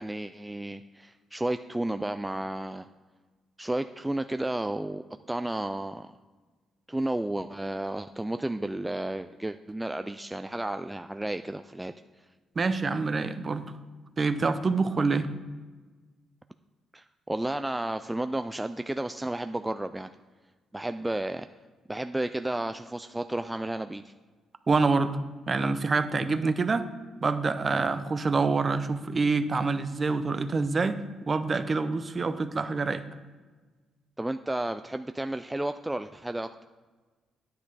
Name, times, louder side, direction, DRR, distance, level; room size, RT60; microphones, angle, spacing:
voice 1, 0.0-2.9 3.6-6.1 6.9-12.3 16.9-20.1 20.7-21.5 21.9-24.1 34.2-36.6, right 1 dB, 10° right, 9 dB, 0.3 m, -32 dB
voice 2, 12.6-13.7 14.2-15.3 24.7-25.2 25.5-26.9 27.2-31.0 31.3-33.0, right 4 dB, 35° right, 11 dB, 0.7 m, -26 dB
9.8 x 8.7 x 4.1 m, 1.3 s
cardioid pair, 90°, 0 cm